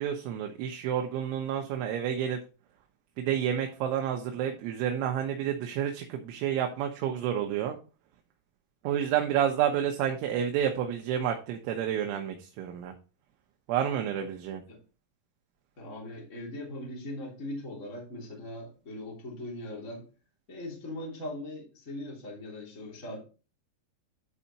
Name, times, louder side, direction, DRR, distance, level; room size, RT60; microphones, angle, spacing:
voice 1, 0.0-2.4 3.2-7.8 8.8-12.9 13.7-14.6, right 9 dB, 75° right, 3 dB, 3.2 m, -29 dB
voice 2, 15.8-20.0 20.5-23.2, left 1 dB, 20° left, -3 dB, 2.5 m, -40 dB
11.0 x 4.9 x 4.2 m, 0.34 s
omnidirectional pair, 5.9 m